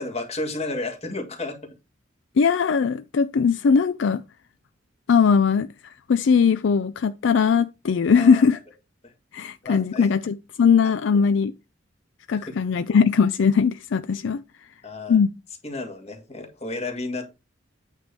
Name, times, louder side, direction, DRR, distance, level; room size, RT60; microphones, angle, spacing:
voice 1, 0.0-1.7 8.1-8.4 9.0-9.1 9.6-10.1 10.8-11.2 12.3-12.6 14.8-15.2 15.6-17.3, left 2 dB, 35° left, 1.7 m, -32 dB
voice 2, 2.4-4.2 5.1-8.6 9.3-11.5 12.3-14.4 15.1-15.3, left 6 dB, 70° left, 0.4 m, -20 dB
9.0 x 3.4 x 6.6 m
head